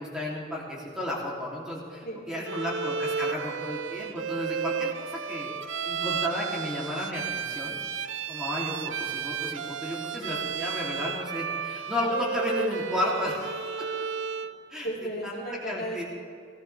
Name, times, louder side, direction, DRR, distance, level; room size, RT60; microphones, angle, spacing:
voice 1, 0.0-5.5 5.8-7.8 8.3-13.9 14.7-14.9 15.2-15.3 15.7-16.0, left 1 dB, 5° right, -6 dB, 2.9 m, -33 dB
voice 2, 2.0-2.9 14.8-16.0, equal, 50° left, -4 dB, 3.2 m, -36 dB
Bowed string instrument, 2.4-14.6, right 7 dB, 70° right, 0.5 m, -33 dB
20.5 x 15.5 x 3.4 m, 2.3 s
head